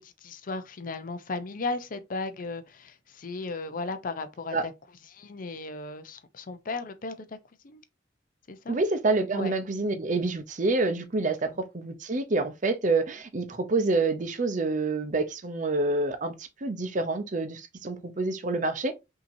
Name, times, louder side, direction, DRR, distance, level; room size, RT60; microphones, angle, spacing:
voice 1, 0.0-4.7 5.1-7.4 7.6-7.8 8.5-8.8 9.3-9.5 11.2-11.6, left 3 dB, 50° left, 0.6 m, -36 dB
voice 2, 8.7-18.9, right 3 dB, 45° right, 0.6 m, -27 dB
5.5 x 2.8 x 2.7 m
head